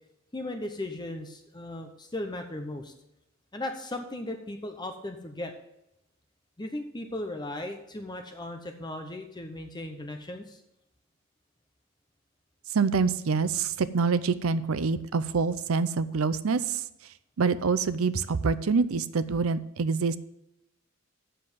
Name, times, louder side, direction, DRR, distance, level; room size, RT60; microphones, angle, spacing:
voice 1, 0.3-2.9 3.5-5.5 6.6-10.6, left 1 dB, 20° left, 5 dB, 0.9 m, -37 dB
voice 2, 12.7-16.8 17.4-20.2, right 5 dB, 85° right, 14 dB, 0.6 m, -26 dB
7.7 x 6.7 x 7.7 m, 0.85 s
head